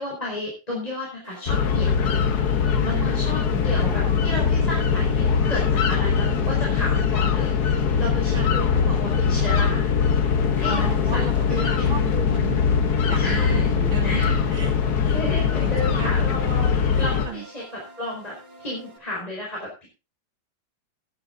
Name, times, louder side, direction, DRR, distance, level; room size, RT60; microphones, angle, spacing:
voice 1, 0.0-2.0 2.9-7.5 7.8-9.9 10.5-12.1 13.2-13.7 14.0-14.3 15.1-19.9, left 1 dB, 20° left, -4 dB, 4.6 m, -33 dB
sound 1, 1.2-19.0, equal, 50° right, 2.9 m, -47 dB
sound 2, 1.5-17.3, left 6 dB, 55° left, 1.6 m, -21 dB
voice 2, 2.8-3.7 8.3-8.7 10.7-12.7 13.1-14.7 15.0-15.2 15.5-16.1 16.9-17.4, right 6 dB, 85° right, -2 dB, 3.3 m, -35 dB
14.0 x 10.5 x 3.8 m, 0.29 s
omnidirectional pair, 2.1 m